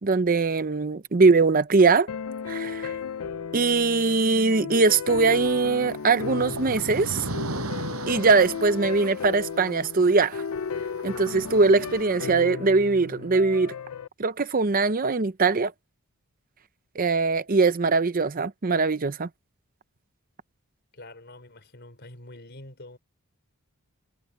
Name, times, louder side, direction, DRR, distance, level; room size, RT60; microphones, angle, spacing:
voice 1, 0.0-2.1 2.5-2.9 3.5-7.3 8.1-10.4 11.0-13.7 14.2-15.7 17.0-19.3, right 4 dB, 40° right, 0.7 m, -21 dB
sound 1, 2.1-14.1, left 6 dB, 80° left, 0.6 m, -35 dB
sound 2, 5.9-10.6 10.9-12.0, right 2 dB, 80° right, 7.4 m, -36 dB
voice 2, 20.9-23.0, left 1 dB, 50° left, 4.4 m, -45 dB
head